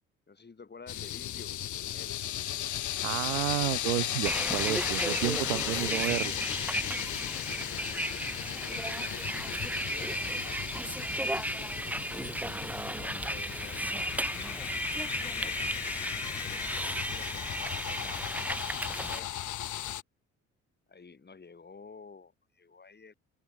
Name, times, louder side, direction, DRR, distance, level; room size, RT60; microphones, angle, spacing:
voice 1, 0.3-1.5 1.8-2.2 7.7-8.1 8.5-10.7 12.3-14.2 15.2-15.7 16.1-18.4 18.7-19.4 20.9-23.1, left 4 dB, 25° left, 3.9 m, -52 dB
sound 1, 0.9-20.0, left 12 dB, 50° left, 1.9 m, -36 dB
voice 2, 3.0-6.3, right 19 dB, 75° right, 1.0 m, -31 dB
Bus, 4.2-19.2, right 1 dB, 5° right, 1.5 m, -35 dB
open air
figure-of-eight pair, 45°, 39 cm